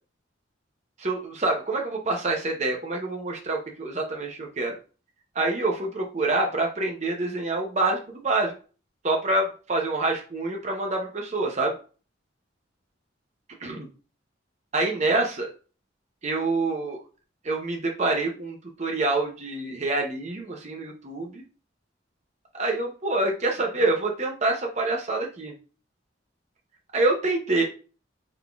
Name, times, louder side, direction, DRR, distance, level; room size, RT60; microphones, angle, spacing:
voice 1, 1.0-4.8 5.3-8.5 9.0-11.7 13.6-13.9 14.7-15.5 16.2-17.0 17.4-21.4 22.5-25.5 26.9-27.6, right 2 dB, 35° right, 1 dB, 0.7 m, -26 dB
3.8 x 3.6 x 2.3 m, 0.35 s
head